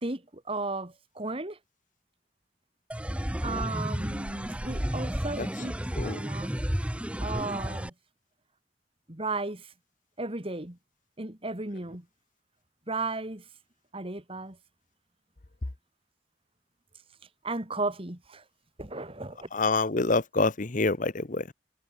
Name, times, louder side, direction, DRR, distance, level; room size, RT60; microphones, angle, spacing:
voice 1, 0.0-1.6 3.4-5.8 6.0-6.5 7.2-7.9 9.1-9.6 10.2-10.8 11.2-12.0 12.9-13.4 13.9-14.6 17.4-18.4 18.8-19.5, right 2 dB, 30° right, 2.3 m, -34 dB
sound 1, 2.9-7.9, equal, 5° right, 0.9 m, -32 dB
voice 2, 6.0-6.3 19.5-21.5, left 3 dB, 45° left, 1.0 m, -27 dB
head